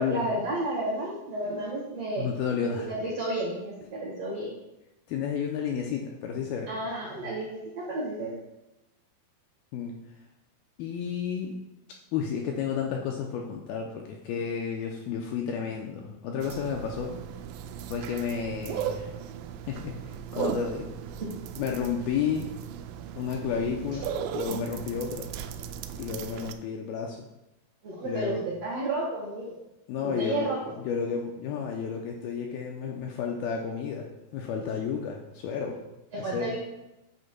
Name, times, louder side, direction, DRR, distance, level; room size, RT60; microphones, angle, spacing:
voice 1, 0.0-2.3 2.6-4.5 6.7-8.4 21.2-21.3 27.8-29.6 30.0-30.6 36.1-36.6, right 2 dB, 60° right, -5 dB, 1.8 m, -32 dB
voice 2, 2.2-2.9 5.1-6.7 9.7-10.0 10.8-11.6 12.1-17.3 17.9-19.1 19.6-20.9 21.6-22.6 23.2-25.3 26.0-27.3 28.0-28.4 29.9-34.1 34.3-35.8 36.2-36.6, left 6 dB, 85° left, 1 dB, 2.2 m, -31 dB
sound 1, 16.4-26.5, right 8 dB, 90° right, 2.7 m, -37 dB
9.3 x 8.2 x 2.2 m, 0.93 s
omnidirectional pair, 4.8 m